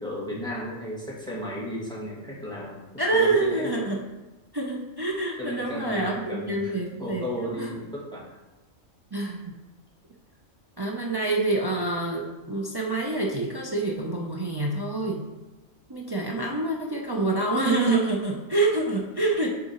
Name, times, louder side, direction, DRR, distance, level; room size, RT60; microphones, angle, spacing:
voice 1, 0.0-2.8 3.1-3.7 5.4-8.2, equal, 5° left, -6 dB, 1.6 m, -34 dB
voice 2, 3.0-4.0 4.5-7.7 9.1-9.5 10.8-15.2 15.9-19.5, right 2 dB, 40° right, -1 dB, 0.3 m, -26 dB
6.7 x 3.7 x 4.3 m, 1.2 s
omnidirectional pair, 1.4 m